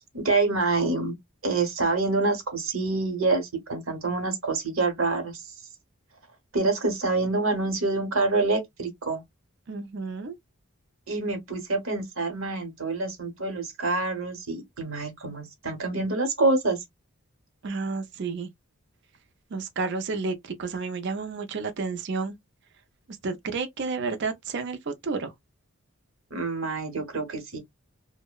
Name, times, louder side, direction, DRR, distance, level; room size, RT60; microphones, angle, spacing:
voice 1, 0.1-1.1 1.4-5.5 6.5-9.2 11.1-16.8 26.3-27.6, right 3 dB, 65° right, 1.0 m, -26 dB
voice 2, 9.7-10.4 17.6-18.5 19.5-22.4 23.2-25.3, right 4 dB, 50° right, 0.4 m, -31 dB
2.7 x 2.0 x 2.2 m
head